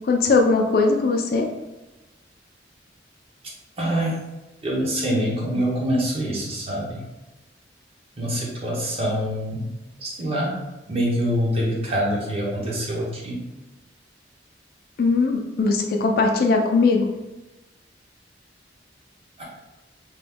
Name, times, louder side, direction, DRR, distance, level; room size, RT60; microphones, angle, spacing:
voice 1, 0.0-1.5 15.0-17.1, left 3 dB, 55° left, 2 dB, 0.4 m, -20 dB
voice 2, 3.8-4.1 4.6-7.0 8.2-9.7 10.0-10.6 10.9-13.4 19.4-19.5, equal, 30° right, -3 dB, 0.8 m, -25 dB
3.0 x 2.2 x 3.5 m, 1.1 s
head